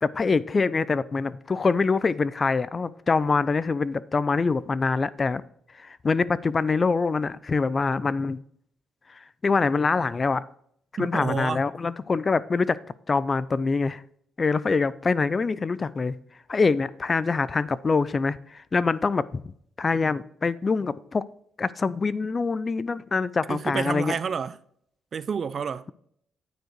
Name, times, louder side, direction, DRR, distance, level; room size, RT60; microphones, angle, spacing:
voice 1, 0.0-5.4 5.8-8.4 9.1-10.4 11.0-12.8 13.1-14.0 14.4-16.1 16.5-19.5 19.8-21.3 21.6-24.1, left 4 dB, 30° left, 0.4 m, -25 dB
voice 2, 11.0-11.6 23.5-24.6 25.1-25.8, right 6 dB, 45° right, 0.3 m, -29 dB
9.2 x 4.7 x 4.5 m
cardioid pair, 90°, 0 cm